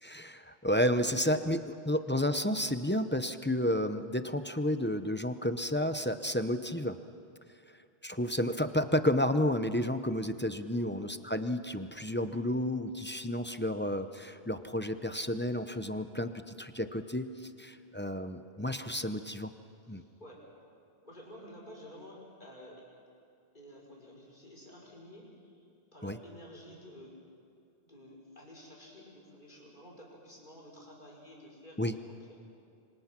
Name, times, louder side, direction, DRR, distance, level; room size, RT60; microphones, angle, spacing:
voice 1, 0.0-7.0 8.0-17.3 17.6-19.5 19.9-20.0 26.0-26.2 31.8-31.9, left 1 dB, 10° left, 9 dB, 0.7 m, -31 dB
voice 2, 10.7-11.1 19.9-20.4 21.0-22.9 23.5-25.5 25.9-27.2 27.9-32.2, equal, 50° left, -3 dB, 5.7 m, -51 dB
27.0 x 25.0 x 6.1 m, 2.4 s
omnidirectional pair, 1.1 m